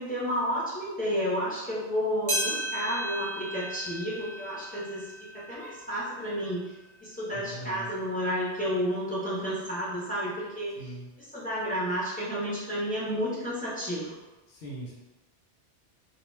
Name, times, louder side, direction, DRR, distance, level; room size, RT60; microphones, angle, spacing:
voice 1, 0.0-5.1 5.3-6.7 7.0-10.8 11.3-14.1, equal, 10° left, -10 dB, 0.7 m, -31 dB
sound 1, 2.3-6.9 7.4-7.5 8.3-8.4 9.4-9.5, right 1 dB, 35° right, 0.8 m, -35 dB
voice 2, 7.3-7.9 10.8-11.1 14.5-14.9, right 1 dB, 65° left, -5 dB, 0.8 m, -41 dB
2.3 x 2.3 x 3.1 m, 1.1 s
omnidirectional pair, 1.2 m